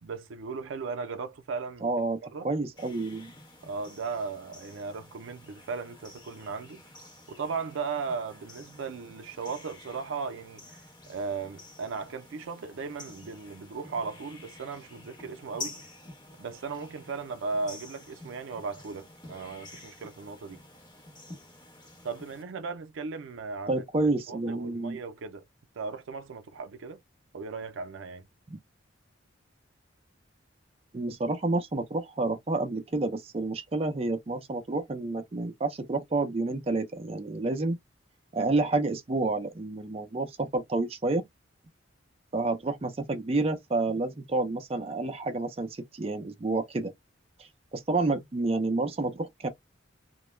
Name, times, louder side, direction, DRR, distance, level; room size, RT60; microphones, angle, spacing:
voice 1, 0.0-1.9 2.3-2.5 3.6-6.8 7.3-15.8 16.4-20.6 22.0-25.5 25.8-27.0 27.3-28.3, right 4 dB, 85° right, 0.4 m, -37 dB
voice 2, 1.8-2.2 2.4-3.3 23.7-25.0 28.5-28.6 30.9-37.8 38.3-41.2 42.3-46.9 47.4-49.5, right 2 dB, 30° right, 0.4 m, -29 dB
sound 1, 2.8-22.4, left 2 dB, 20° left, 1.0 m, -49 dB
2.2 x 2.0 x 3.0 m
head